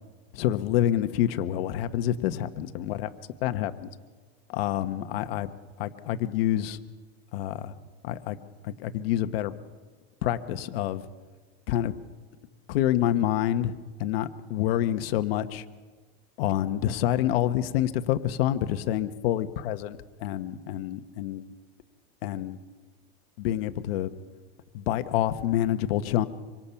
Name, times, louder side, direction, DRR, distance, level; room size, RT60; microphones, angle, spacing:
voice 1, 0.3-3.1 3.4-3.9 4.5-6.8 7.3-7.7 8.0-8.4 8.6-9.5 10.2-11.0 11.7-11.9 12.7-13.7 14.0-15.6 16.4-21.4 22.2-22.6 23.4-24.1 24.7-26.3, left 12 dB, 65° left, 10 dB, 1.2 m, -27 dB
26.0 x 25.5 x 5.8 m, 1.4 s
supercardioid pair, 160°, 32 cm